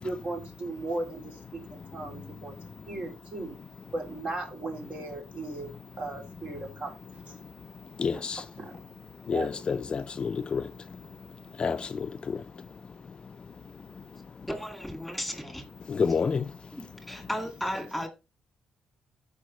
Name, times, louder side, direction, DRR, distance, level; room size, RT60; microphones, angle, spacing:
voice 1, 0.0-2.5 2.9-3.5 3.9-5.7 6.0-7.4 8.1-8.8 9.3-9.6, right 2 dB, 45° right, 3.1 m, -37 dB
voice 2, 8.0-8.4 9.3-10.6 11.6-11.9 15.9-16.4, left 5 dB, 40° left, 0.5 m, -28 dB
voice 3, 14.4-15.6 16.7-18.1, equal, ahead, 2.1 m, -35 dB
14.5 x 5.1 x 3.2 m
cardioid pair, 100°, 3 cm